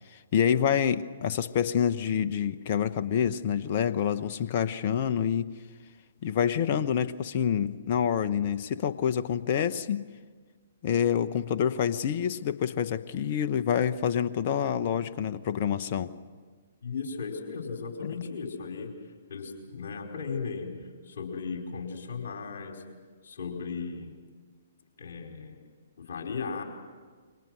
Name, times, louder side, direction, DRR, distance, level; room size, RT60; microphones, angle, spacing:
voice 1, 0.3-5.5 6.2-10.1 10.8-16.1, left 8 dB, 45° left, 12 dB, 1.1 m, -27 dB
voice 2, 16.8-18.9 19.3-20.7 21.0-22.8 23.2-24.2 25.0-25.6 26.0-26.6, left 5 dB, 60° left, 3 dB, 4.6 m, -36 dB
29.0 x 23.5 x 6.4 m, 1.5 s
figure-of-eight pair, 120°, 0 cm